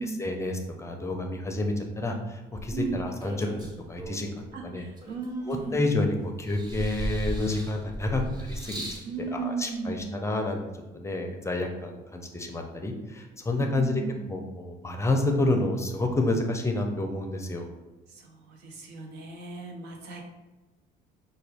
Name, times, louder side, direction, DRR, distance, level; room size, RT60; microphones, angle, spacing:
voice 1, 0.0-3.5 3.9-4.3 4.6-4.8 5.4-8.8 9.3-10.6 10.9-14.0 14.3-17.7, left 2 dB, 15° left, 3 dB, 0.5 m, -29 dB
sound 1, 2.6-4.4 5.0-6.0 6.5-9.1 10.0-10.1, equal, 25° right, 0.8 m, -36 dB
voice 2, 2.7-3.0 4.5-5.8 9.0-10.2 13.6-14.3 18.1-20.2, right 4 dB, 80° right, 1 dB, 0.9 m, -36 dB
5.6 x 2.3 x 3.4 m, 1.1 s
cardioid pair, 110°, 17 cm